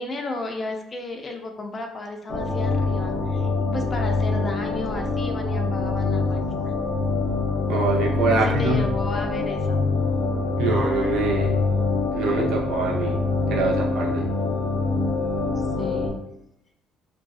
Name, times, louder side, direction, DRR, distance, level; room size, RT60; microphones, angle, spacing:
voice 1, 0.0-6.7 8.3-9.8 15.8-16.2, left 2 dB, 30° left, 3 dB, 0.4 m, -33 dB
sound 1, 2.3-16.1, left 3 dB, 75° left, 0.8 m, -24 dB
voice 2, 7.7-8.8 10.6-11.6 12.1-13.2 13.5-14.3, right 4 dB, 75° right, 0 dB, 0.6 m, -24 dB
2.6 x 2.3 x 2.2 m, 0.81 s
cardioid pair, 105°, 0 cm